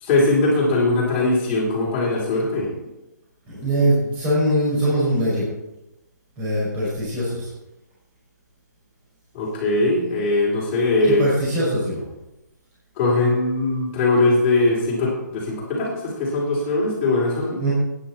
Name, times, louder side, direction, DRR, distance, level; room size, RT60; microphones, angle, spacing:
voice 1, 0.0-2.7 9.3-11.2 13.0-17.6, left 2 dB, 15° left, -5 dB, 3.6 m, -20 dB
voice 2, 3.5-5.5 6.4-7.5 11.1-12.0 17.6-17.7, right 1 dB, 15° right, -8 dB, 5.3 m, -22 dB
13.5 x 10.0 x 4.4 m, 0.94 s
hypercardioid pair, 170°, 10 cm